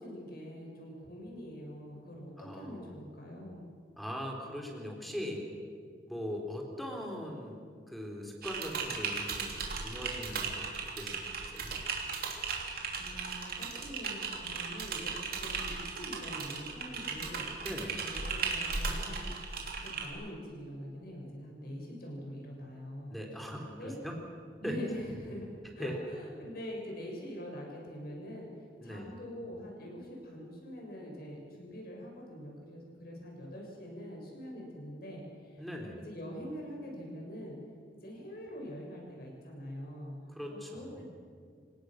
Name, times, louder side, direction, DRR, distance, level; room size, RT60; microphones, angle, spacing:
voice 1, 0.0-3.7 13.0-17.5 18.0-19.3 19.8-23.1 23.6-23.9 24.6-25.5 25.7-28.5 28.8-35.2 36.0-37.6 37.9-40.1 40.5-41.1, equal, 60° left, -1 dB, 6.7 m, -44 dB
voice 2, 2.4-3.0 4.0-5.5 6.1-7.6 7.9-11.8 17.6-18.1 23.1-24.2 24.6-24.8 25.8-26.0 28.8-29.1 35.6-36.0 40.3-41.1, equal, ahead, 1 dB, 3.7 m, -40 dB
Typing, 8.4-20.1, right 5 dB, 60° right, 3.2 m, -37 dB
27.0 x 18.0 x 6.5 m, 2.1 s
head